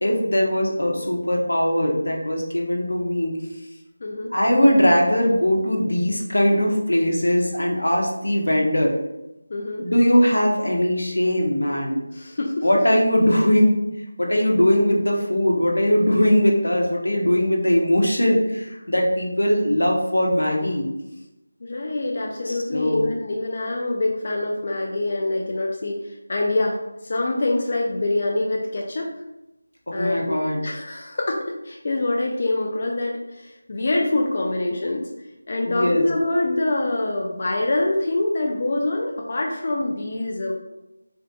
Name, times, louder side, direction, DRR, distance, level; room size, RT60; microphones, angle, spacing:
voice 1, 0.0-3.3 4.3-8.9 9.8-12.0 12.6-13.8 14.2-20.9 22.5-23.1 29.9-30.6 35.6-36.1, equal, 85° left, 0 dB, 0.8 m, -20 dB
voice 2, 4.0-4.3 9.5-9.8 12.1-12.7 21.6-26.8 27.0-29.1 29.9-35.0 35.5-40.5, left 2 dB, 45° left, -1 dB, 0.4 m, -25 dB
3.5 x 2.5 x 2.3 m, 0.93 s
figure-of-eight pair, 170°, 0 cm